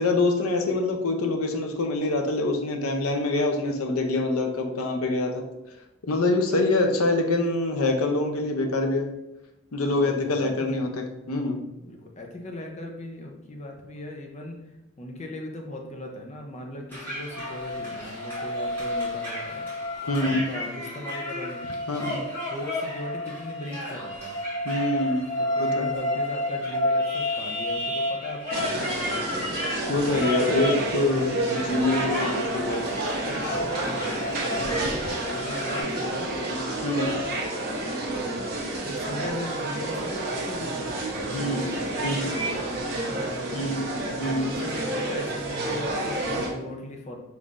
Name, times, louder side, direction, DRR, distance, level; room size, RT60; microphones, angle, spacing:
voice 1, 0.0-5.4 6.1-9.1 9.7-11.6 20.1-20.5 21.9-22.2 24.6-25.3 25.6-25.8 29.9-32.9 36.8-37.1 41.3-41.6 42.0-42.3 43.5-43.8 44.2-44.5, left 2 dB, 90° left, 4 dB, 0.6 m, -25 dB
voice 2, 9.8-10.7 11.8-19.7 20.2-21.7 22.5-24.4 25.4-29.5 33.8-36.3 36.9-37.4 37.9-38.4 38.8-44.0 44.4-47.2, left 1 dB, 30° left, 2 dB, 0.6 m, -38 dB
sound 1, 16.9-35.8, left 1 dB, 10° left, 1.4 m, -31 dB
sound 2, 28.5-46.5, right 2 dB, 45° right, 0.9 m, -30 dB
5.3 x 3.1 x 2.5 m, 0.94 s
head